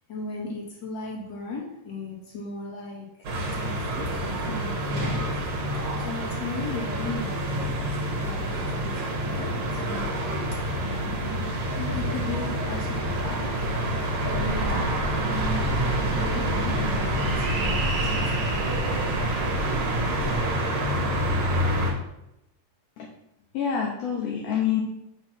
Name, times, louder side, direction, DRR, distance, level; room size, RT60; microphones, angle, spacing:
voice 1, 0.1-5.4 6.0-10.2 10.8-18.5, left 3 dB, 40° left, -3 dB, 2.4 m, -37 dB
sound 1, 3.2-21.9, right 1 dB, 65° right, 2.5 m, -27 dB
sound 2, 14.3-20.4, right 1 dB, 35° right, 1.8 m, -32 dB
voice 2, 23.5-24.8, left 8 dB, 65° left, -1 dB, 1.9 m, -26 dB
8.5 x 3.4 x 6.1 m, 0.87 s
omnidirectional pair, 3.4 m